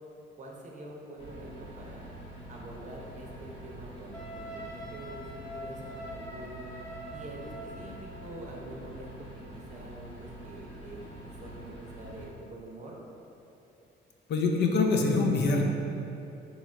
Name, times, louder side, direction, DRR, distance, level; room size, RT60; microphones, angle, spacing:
voice 1, 0.4-2.1 2.5-6.7 7.1-9.3 9.5-11.0 11.4-12.9, right 1 dB, 35° right, -2 dB, 0.6 m, -45 dB
sound 1, 1.2-12.3, right 1 dB, 30° left, 1.1 m, -46 dB
Wind instrument woodwind instrument, 4.1-8.0, equal, 15° left, 0.7 m, -44 dB
voice 2, 14.3-15.6, left 3 dB, 60° left, 1 dB, 0.4 m, -24 dB
3.0 x 2.4 x 4.3 m, 2.9 s
cardioid pair, 90°, 20 cm